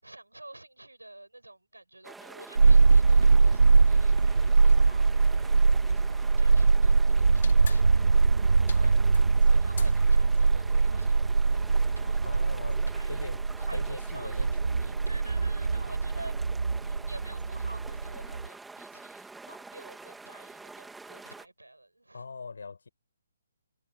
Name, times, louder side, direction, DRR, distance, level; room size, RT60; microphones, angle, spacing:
voice 1, 0.0-5.5 5.9-8.9 9.5-12.4 12.9-13.2 13.6-16.3 16.8-22.3, right 2 dB, 85° right, 6.9 m, -49 dB
sound 1, 2.0-21.5, right 3 dB, 5° right, 3.5 m, -47 dB
sound 2, 2.6-18.5, right 4 dB, 65° right, 0.3 m, -22 dB
sound 3, 7.4-12.9, left 8 dB, 50° left, 5.9 m, -49 dB
voice 2, 12.2-13.4 13.7-14.8 22.1-22.9, left 4 dB, 65° left, 6.6 m, -42 dB
figure-of-eight pair, 135°, 0 cm